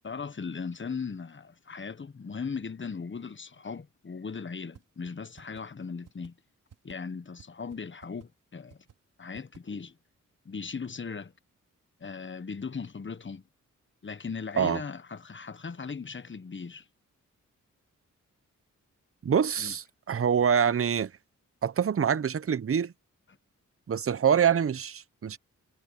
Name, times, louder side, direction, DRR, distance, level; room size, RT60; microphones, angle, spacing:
voice 1, 0.0-6.3 6.8-8.8 9.2-10.0 10.4-11.3 12.0-13.4 14.0-16.9 19.6-19.8, left 5 dB, 40° left, 1.3 m, -38 dB
sound 1, 4.7-4.8 5.1-5.2 5.4-5.6 6.0-6.3 6.7-6.9 7.4-7.5 7.7-7.8 8.0-8.3 8.7-8.9 9.3-9.6, right 8 dB, 90° right, 5.2 m, -52 dB
voice 2, 19.2-21.1 21.6-22.9 23.9-25.4, right 7 dB, 45° right, 0.8 m, -25 dB
cardioid pair, 55°, 31 cm